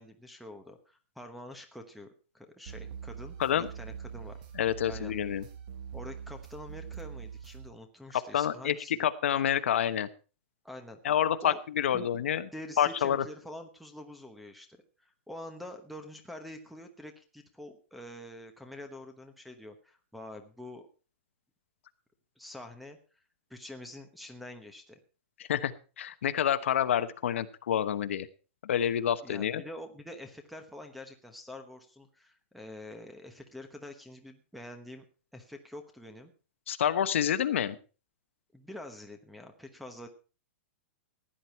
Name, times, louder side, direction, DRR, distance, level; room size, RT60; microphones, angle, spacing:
voice 1, 0.0-2.1 2.3-4.4 4.9-5.1 5.9-9.1 10.6-11.0 11.4-11.6 11.9-12.1 12.5-14.7 15.0-20.9 22.4-23.0 23.5-25.0 29.2-35.0 35.3-36.3 38.5-40.1, left 1 dB, ahead, 8 dB, 1.0 m, -46 dB
sound 1, 2.7-7.7, right 7 dB, 40° right, 1.7 m, -43 dB
voice 2, 4.6-5.4 8.3-10.1 11.0-12.4 12.8-13.2 25.5-28.3 28.6-29.6 36.7-37.8, left 10 dB, 65° left, 11 dB, 1.0 m, -28 dB
15.5 x 10.0 x 4.4 m, 0.35 s
supercardioid pair, 175°, 7 cm